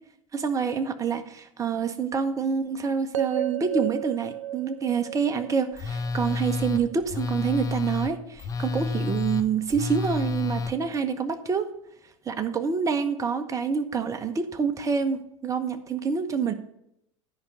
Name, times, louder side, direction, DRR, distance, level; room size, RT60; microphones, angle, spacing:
voice 1, 0.3-11.7 12.3-16.5, right 6 dB, 20° right, 8 dB, 0.9 m, -27 dB
sound 1, 3.1-7.3, right 11 dB, 70° right, 0.4 m, -33 dB
Telephone, 5.8-10.7, left 3 dB, 20° left, 0.7 m, -30 dB
10.0 x 5.2 x 6.9 m, 0.78 s
figure-of-eight pair, 85°, 17 cm